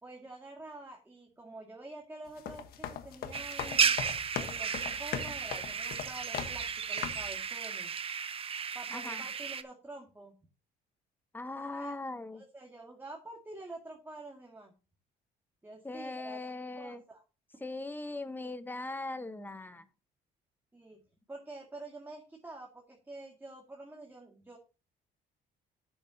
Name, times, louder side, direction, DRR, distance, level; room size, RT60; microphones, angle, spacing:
voice 1, 0.0-4.0 4.4-7.9 8.7-10.3 11.6-12.0 12.3-14.7 15.6-16.4 16.8-17.2 20.7-21.0 21.3-24.6, right 2 dB, 10° right, 0 dB, 2.2 m, -47 dB
sound 1, 2.3-6.7 7.0-7.3, left 8 dB, 65° left, 1.3 m, -39 dB
sound 2, 3.3-9.6, right 6 dB, 35° right, 0.8 m, -33 dB
voice 2, 8.9-9.2 11.3-12.4 15.8-17.0 17.6-19.9, left 2 dB, 10° left, 10 dB, 1.1 m, -40 dB
13.0 x 7.1 x 2.8 m, 0.31 s
cardioid pair, 110°, 17 cm